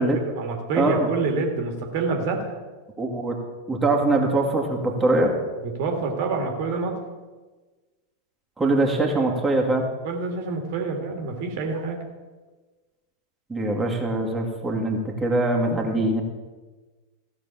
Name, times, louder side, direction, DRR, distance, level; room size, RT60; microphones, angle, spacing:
voice 1, 0.0-2.6 5.6-7.0 10.0-12.0, right 3 dB, 50° right, 3 dB, 1.9 m, -27 dB
voice 2, 0.7-1.1 3.0-3.4 3.7-5.3 8.6-9.9 13.5-16.2, right 2 dB, 10° right, -1 dB, 2.0 m, -22 dB
15.0 x 6.0 x 7.2 m, 1.3 s
figure-of-eight pair, 90°, 0 cm